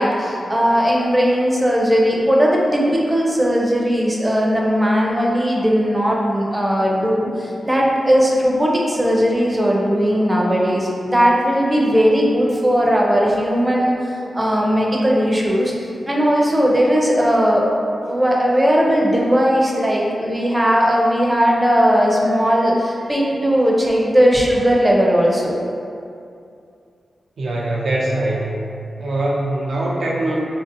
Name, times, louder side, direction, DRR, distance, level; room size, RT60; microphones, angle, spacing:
voice 1, 0.0-15.7 16.1-17.7 18.0-25.6, equal, 20° right, -3 dB, 0.5 m, -17 dB
voice 2, 27.4-28.6 29.0-30.4, right 1 dB, 75° right, -3 dB, 0.4 m, -22 dB
2.6 x 2.1 x 2.5 m, 2.5 s
cardioid pair, 50°, 0 cm